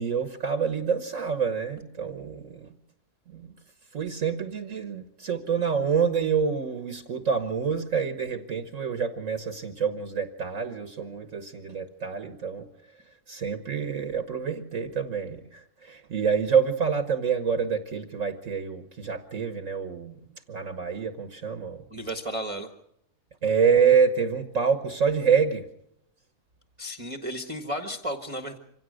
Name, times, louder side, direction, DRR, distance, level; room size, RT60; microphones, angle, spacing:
voice 1, 0.0-2.8 3.3-3.5 3.9-12.7 12.9-20.2 20.5-21.8 23.4-25.7, right 6 dB, 55° right, 8 dB, 1.5 m, -27 dB
voice 2, 21.9-22.7 26.8-28.6, equal, 20° right, 3 dB, 1.4 m, -33 dB
25.5 x 17.0 x 6.4 m, 0.75 s
omnidirectional pair, 1.6 m